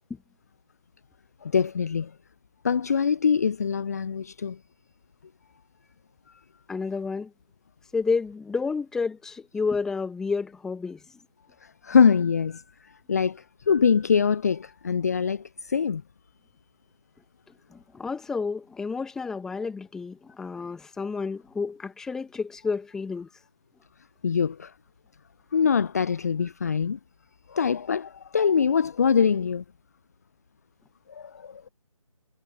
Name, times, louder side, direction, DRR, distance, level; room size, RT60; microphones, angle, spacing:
voice 1, 1.4-2.1 2.6-4.6 11.8-12.6 13.1-16.0 24.2-24.7 25.5-27.0 27.5-29.6 31.1-31.7, left 6 dB, 30° left, 0.8 m, -23 dB
voice 2, 6.7-7.3 7.9-11.0 17.7-23.3, left 4 dB, 5° left, 1.9 m, -30 dB
figure-of-eight pair, 155°, 18 cm